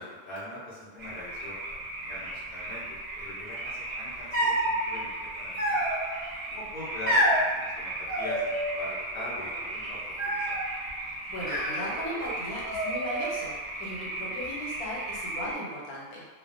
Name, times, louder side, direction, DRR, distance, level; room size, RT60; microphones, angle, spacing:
voice 1, 0.0-5.8 6.5-10.6, left 1 dB, 60° left, -8 dB, 0.6 m, -42 dB
sound 1, 1.0-15.5, right 2 dB, 55° right, 0.8 m, -37 dB
sound 2, 4.3-4.8 5.6-6.2 7.1-7.4 8.1-8.9 9.2-9.7 10.2-10.7 11.4-12.3 12.6-13.4, equal, 15° right, 0.4 m, -28 dB
voice 2, 11.0-16.3, equal, 80° left, -5 dB, 1.1 m, -37 dB
2.4 x 2.1 x 2.5 m, 1.4 s
omnidirectional pair, 1.6 m